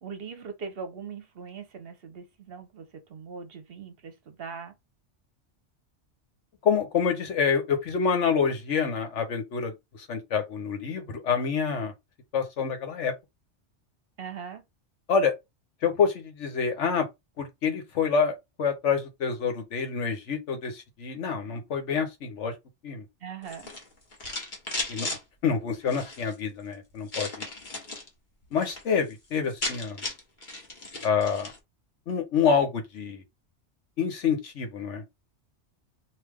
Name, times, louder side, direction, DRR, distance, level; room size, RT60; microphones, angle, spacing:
voice 1, 0.0-4.8 14.2-14.6 23.2-23.7, right 6 dB, 60° right, 0.9 m, -40 dB
voice 2, 6.6-11.9 12.3-13.1 15.1-15.3 15.8-17.1 17.4-22.5 22.8-23.0 24.9-25.1 25.4-27.4 28.5-30.0 31.0-31.5 32.1-33.2 34.0-35.0, left 6 dB, 80° left, 1.3 m, -27 dB
sound 1, 23.4-25.2 25.8-26.3 27.1-28.1 28.4-28.8 29.1-29.2 29.4-31.6, left 2 dB, 45° left, 1.3 m, -36 dB
3.2 x 2.7 x 3.5 m
omnidirectional pair, 1.2 m